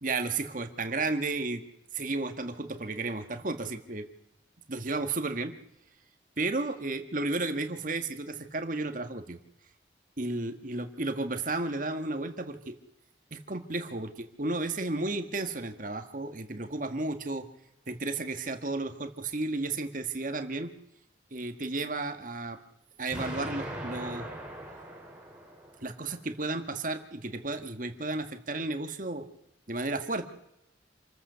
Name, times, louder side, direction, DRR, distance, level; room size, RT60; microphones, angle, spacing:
voice 1, 0.0-1.6 1.9-4.1 4.7-5.6 6.4-9.4 10.2-12.8 13.3-17.5 17.9-20.7 21.3-22.6 23.0-24.3 25.8-29.3 29.7-30.2, right 2 dB, 45° right, 7 dB, 1.7 m, -33 dB
Explosion, 23.1-26.1, right 1 dB, 5° right, 5.4 m, -40 dB
27.5 x 14.5 x 6.9 m, 0.85 s
head